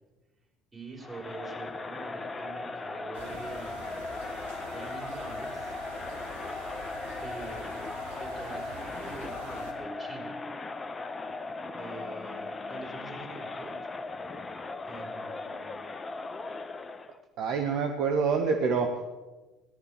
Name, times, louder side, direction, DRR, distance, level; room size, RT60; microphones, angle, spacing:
voice 1, 0.7-4.1 4.6-5.7 7.1-7.7 8.1-10.4 11.7-13.8 14.8-16.0, right 3 dB, 25° right, -1 dB, 5.8 m, -45 dB
Crowd, 1.0-17.2, left 3 dB, 25° left, 1.1 m, -38 dB
sound 1, 3.1-9.7, right 1 dB, 80° right, 2.8 m, -44 dB
voice 2, 17.4-19.0, right 5 dB, 60° right, 4 dB, 1.4 m, -26 dB
18.0 x 12.0 x 6.7 m, 1.2 s
hypercardioid pair, 60°, 0 cm